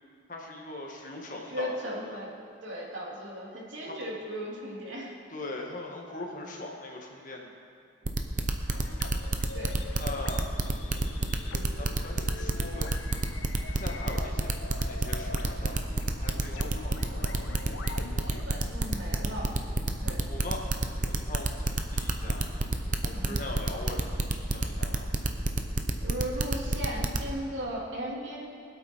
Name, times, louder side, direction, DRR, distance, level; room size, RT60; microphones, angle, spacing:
voice 1, 0.3-2.2 3.9-4.0 5.3-7.5 10.0-10.5 11.5-13.0 13.7-14.5 14.9-15.8 16.0-17.4 20.3-20.6 21.0-22.5 23.0-25.1, left 2 dB, 40° left, 0 dB, 1.8 m, -40 dB
voice 2, 1.5-2.3 2.6-5.1 9.5-9.8 18.2-19.5 20.0-20.2 23.1-23.4 26.0-28.6, equal, 80° right, -4 dB, 3.1 m, -37 dB
sound 1, 8.1-27.3, right 2 dB, 40° right, 0.8 m, -28 dB
sound 2, 8.7-18.4, left 4 dB, 90° left, 0.8 m, -44 dB
sound 3, 13.0-24.1, equal, 10° left, 1.5 m, -48 dB
23.5 x 8.4 x 4.6 m, 2.3 s
head